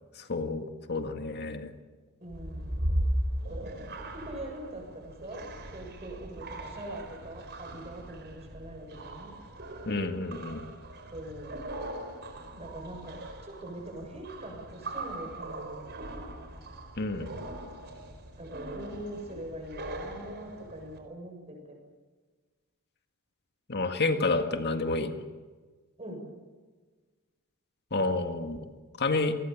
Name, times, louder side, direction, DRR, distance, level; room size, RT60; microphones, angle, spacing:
voice 1, 0.3-1.7 9.9-10.6 17.0-17.3 23.7-25.2 27.9-28.6 29.0-29.3, left 3 dB, 50° left, 6 dB, 1.9 m, -29 dB
voice 2, 2.2-2.9 3.5-9.4 11.1-11.7 12.6-15.8 18.4-21.8 26.0-26.2, right 1 dB, 30° right, 2 dB, 7.3 m, -43 dB
sound 1, 2.3-21.0, right 1 dB, 50° right, 4.4 m, -38 dB
27.5 x 20.0 x 7.3 m, 1.4 s
head